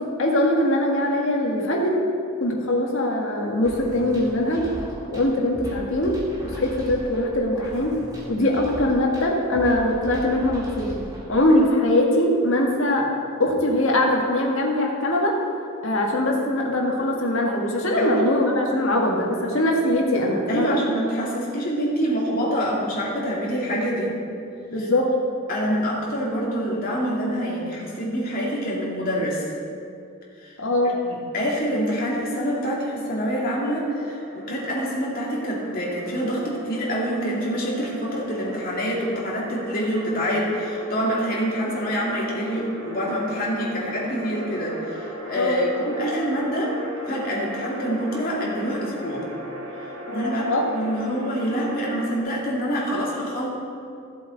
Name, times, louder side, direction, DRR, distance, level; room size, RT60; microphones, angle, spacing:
voice 1, 0.0-2.0 2.4-4.7 5.1-6.1 6.5-8.0 8.3-11.0 11.3-13.1 13.4-15.4 15.8-20.8 24.7-25.1 30.6-31.0 45.4-45.6 50.1-50.6, left 1 dB, 65° left, -1 dB, 1.7 m, -22 dB
sound 1, 3.6-11.6, equal, 20° right, 1.8 m, -38 dB
voice 2, 20.5-24.1 25.5-29.4 30.4-30.5 31.1-46.7 47.1-49.3 50.1-50.5 50.7-53.5, equal, 45° left, -5 dB, 2.4 m, -26 dB
sound 2, 32.2-52.2, equal, 65° right, 1.7 m, -38 dB
15.0 x 7.7 x 4.0 m, 2.5 s
head